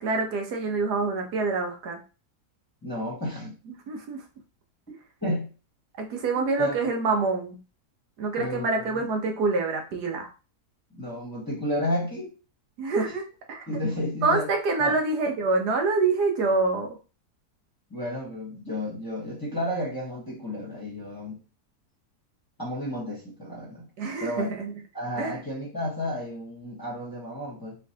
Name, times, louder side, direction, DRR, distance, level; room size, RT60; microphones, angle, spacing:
voice 1, 0.0-2.0 3.7-4.2 6.0-7.6 8.2-10.3 12.8-13.7 14.2-17.0 24.0-24.7 25.2-25.4, right 3 dB, 80° right, 3 dB, 1.4 m, -26 dB
voice 2, 2.8-3.5 5.2-5.5 6.6-6.8 8.4-8.8 10.9-12.3 13.7-14.5 14.8-14.9 17.9-21.4 22.6-23.9 24.2-24.5 24.9-27.8, left 1 dB, 15° left, -5 dB, 1.1 m, -31 dB
4.4 x 3.2 x 2.8 m, 0.33 s
omnidirectional pair, 1.7 m